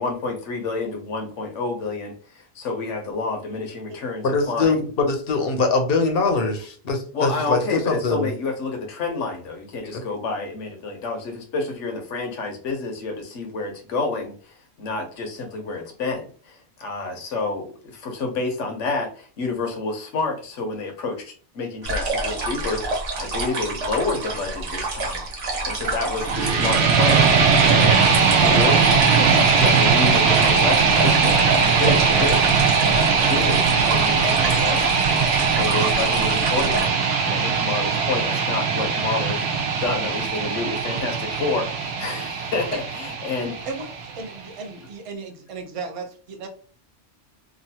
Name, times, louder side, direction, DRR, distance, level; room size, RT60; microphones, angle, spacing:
voice 1, 0.0-4.8 7.1-25.2 25.6-27.3 27.6-35.1 35.4-39.4 39.7-43.5, left 3 dB, 80° left, 3 dB, 1.2 m, -29 dB
voice 2, 4.2-8.3 9.9-10.0, left 3 dB, 55° left, 4 dB, 0.9 m, -22 dB
sound 1, 21.8-36.9, right 2 dB, 85° right, 1.2 m, -28 dB
sound 2, 26.2-44.2, right 5 dB, 70° right, 0.9 m, -20 dB
voice 3, 43.7-46.5, right 4 dB, 40° right, 4 dB, 0.5 m, -35 dB
3.0 x 2.4 x 2.8 m, 0.41 s
omnidirectional pair, 1.2 m